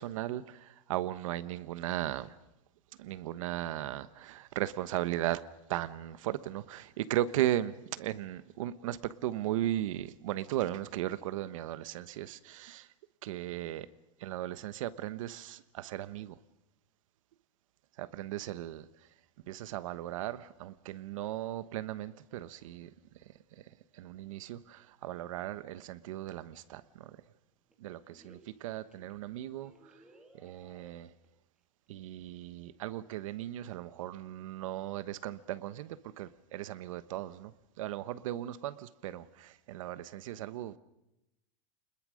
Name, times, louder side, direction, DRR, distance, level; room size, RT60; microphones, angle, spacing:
voice 1, 0.0-2.3 3.0-5.4 5.7-12.9 13.2-13.9 14.2-16.4 18.0-18.9 19.5-22.9 23.3-23.4 23.9-27.2 27.8-29.9 30.3-31.1 31.9-40.8, right 13 dB, 75° right, 1.2 m, -37 dB
sound 1, 27.4-27.7 28.1-28.6 28.9-29.1 29.6-31.3 31.6-31.7 31.9-32.0, right 1 dB, 5° right, 2.2 m, -61 dB
30.0 x 21.0 x 6.5 m
supercardioid pair, 180°, 17 cm